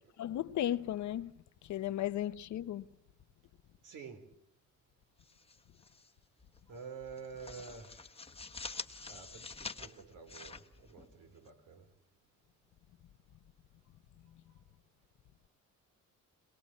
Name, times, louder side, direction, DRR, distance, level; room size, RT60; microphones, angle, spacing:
voice 1, 0.2-1.3 1.6-2.8, left 12 dB, 70° left, 1.1 m, -35 dB
voice 2, 3.8-4.3 6.7-8.1 9.0-11.9, right 5 dB, 80° right, 4.0 m, -49 dB
sound 1, 5.2-6.1 6.4-6.6 7.0-11.5, left 4 dB, 20° left, 1.3 m, -47 dB
23.0 x 21.0 x 7.5 m
cardioid pair, 90°, 30 cm